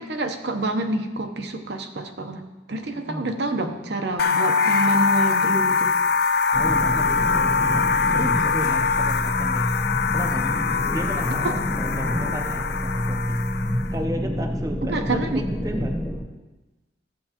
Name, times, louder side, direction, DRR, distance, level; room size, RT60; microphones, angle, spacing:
voice 1, 0.0-2.4 2.7-5.9 14.9-15.4, right 2 dB, 65° right, 5 dB, 0.8 m, -27 dB
voice 2, 2.9-3.3 6.5-10.5 10.9-13.4 13.9-15.9, equal, 20° right, 3 dB, 0.6 m, -34 dB
sound 1, 4.2-13.9, left 5 dB, 55° left, 0.3 m, -23 dB
sound 2, 6.5-16.2, equal, ahead, 1.0 m, -28 dB
13.5 x 7.8 x 2.9 m, 1.1 s
head